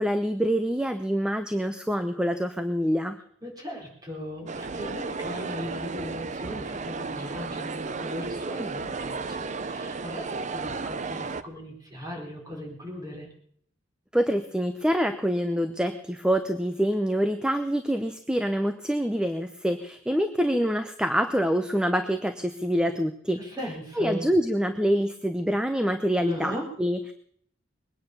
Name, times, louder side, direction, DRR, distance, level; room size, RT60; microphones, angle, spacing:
voice 1, 0.0-3.2 14.1-23.4 24.0-27.1, equal, 5° right, 8 dB, 0.7 m, -26 dB
voice 2, 3.4-13.3 23.3-24.2 26.2-26.7, equal, 20° right, 0 dB, 4.5 m, -37 dB
sound 1, 4.5-11.4, right 4 dB, 40° right, 0.6 m, -34 dB
21.0 x 9.5 x 6.8 m, 0.64 s
head